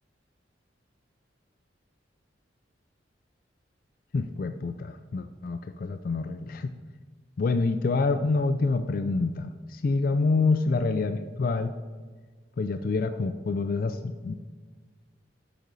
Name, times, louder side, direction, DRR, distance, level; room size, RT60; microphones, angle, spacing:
voice 1, 4.1-6.7 7.4-11.7 12.6-14.3, left 3 dB, 50° left, 8 dB, 0.3 m, -27 dB
6.6 x 5.1 x 6.1 m, 1.4 s
head